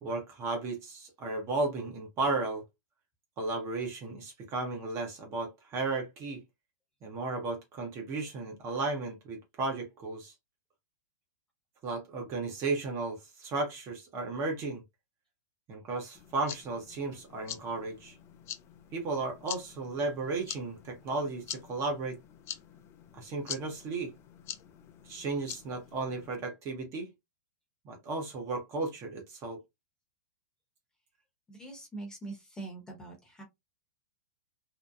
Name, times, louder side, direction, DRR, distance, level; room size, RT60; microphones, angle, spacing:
voice 1, 0.0-2.6 3.4-6.4 7.0-10.3 11.8-14.8 15.7-18.1 18.9-22.2 23.1-24.1 25.0-27.1 27.8-29.6, right 3 dB, 30° right, 0.8 m, -34 dB
sound 1, 16.1-26.4, left 10 dB, 30° left, 0.4 m, -46 dB
voice 2, 31.5-33.4, right 3 dB, 10° left, 1.0 m, -43 dB
2.8 x 2.1 x 2.3 m
hypercardioid pair, 130°, 10 cm